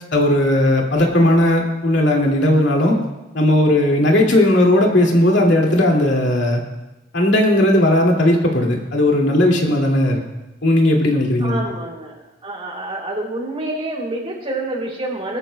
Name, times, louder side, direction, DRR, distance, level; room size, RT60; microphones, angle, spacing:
voice 1, 0.1-3.0 3.3-6.6 7.1-10.2 10.6-11.6, left 1 dB, 70° left, 0 dB, 2.3 m, -16 dB
voice 2, 11.4-12.1 12.4-15.4, right 1 dB, 30° right, -1 dB, 2.8 m, -27 dB
21.0 x 14.0 x 2.2 m, 1.0 s
head